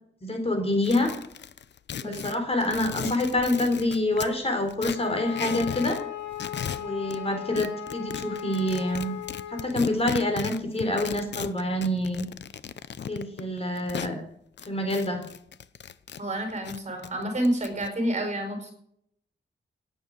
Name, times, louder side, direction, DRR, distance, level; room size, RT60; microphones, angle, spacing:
voice 1, 0.2-1.1 2.0-6.0 6.7-9.1 9.5-12.3 13.1-14.2 14.7-15.2, left 1 dB, 30° left, 5 dB, 3.9 m, -27 dB
sound 1, 0.8-4.3 4.7-6.0 6.3-7.2 7.6-14.1 14.6-16.2 16.5-17.9, left 8 dB, 65° left, 0.8 m, -36 dB
Wind instrument woodwind instrument, 4.9-9.7, left 12 dB, 85° left, 4.6 m, -37 dB
voice 2, 16.2-18.7, right 1 dB, 40° right, 5 dB, 4.9 m, -29 dB
18.0 x 9.0 x 6.6 m, 0.67 s
wide cardioid pair, 130°, 19 cm